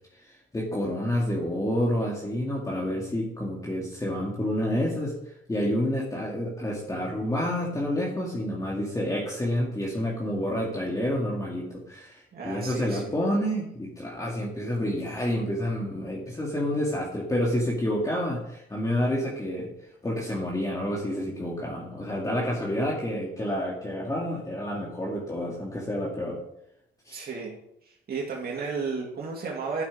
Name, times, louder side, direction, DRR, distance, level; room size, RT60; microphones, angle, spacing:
voice 1, 0.2-5.2 5.5-19.7 20.0-26.4 27.1-27.2, equal, 15° left, -4 dB, 2.3 m, -29 dB
voice 2, 12.3-13.2 27.1-27.6 27.9-29.8, right 4 dB, 50° right, -2 dB, 2.3 m, -33 dB
12.0 x 5.9 x 5.0 m, 0.77 s
cardioid pair, 90°, 20 cm